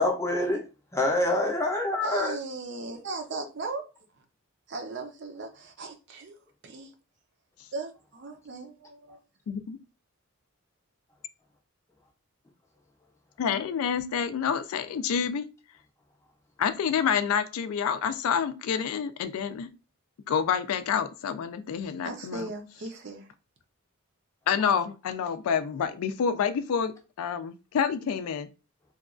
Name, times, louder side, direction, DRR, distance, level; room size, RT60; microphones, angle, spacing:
voice 1, 0.0-0.6 0.9-2.4, left 1 dB, 15° left, 0.5 m, -26 dB
voice 2, 2.0-3.8 4.7-6.4 6.6-6.9 7.7-9.2 22.0-23.3, right 3 dB, 50° right, 0.5 m, -37 dB
voice 3, 9.5-9.8 13.4-15.5 16.6-19.7 20.3-22.5 24.5-28.5, left 7 dB, 80° left, 0.3 m, -28 dB
2.9 x 2.3 x 2.4 m
head